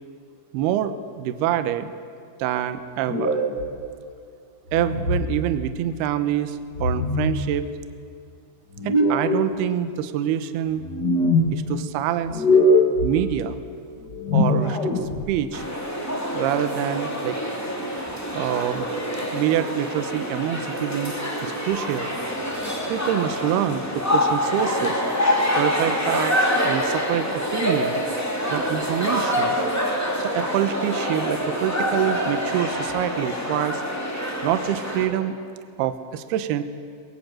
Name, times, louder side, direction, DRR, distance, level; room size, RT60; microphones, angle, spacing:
voice 1, 0.5-1.9 2.4-3.4 4.7-7.6 8.8-10.9 11.5-12.4 13.0-13.6 14.3-14.8 15.3-15.6 16.3-17.4 18.3-18.9 19.3-21.1 21.4-22.1 22.9-25.0 25.6-26.4 26.6-28.0 28.5-29.6 30.2-33.8 34.4-35.4 35.8-36.6, right 11 dB, 75° right, 11 dB, 2.5 m, -26 dB
sound 1, 3.0-3.6 4.7-5.3 6.7-7.4 8.7-9.4 10.7-11.5 12.2-13.1 14.1-15.3, left 1 dB, 50° left, 1.2 m, -21 dB
sound 2, 15.5-35.1, equal, 10° left, 1.0 m, -26 dB
22.5 x 22.0 x 7.7 m, 2.4 s
omnidirectional pair, 5.7 m